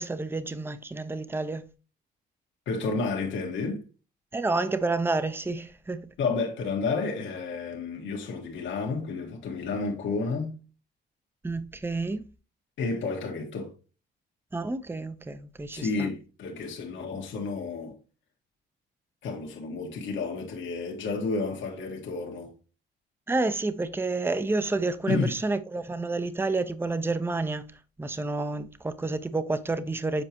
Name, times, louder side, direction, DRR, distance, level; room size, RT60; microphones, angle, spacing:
voice 1, 0.0-1.7 4.3-6.1 11.4-12.2 14.5-16.1 23.3-27.7 28.0-30.2, right 3 dB, 10° right, 0.6 m, -29 dB
voice 2, 2.7-3.9 6.2-10.6 12.8-13.7 15.7-18.0 19.2-22.5 25.1-25.3, left 4 dB, 75° left, 1.5 m, -31 dB
7.7 x 4.7 x 2.9 m
cardioid pair, 90°, 20 cm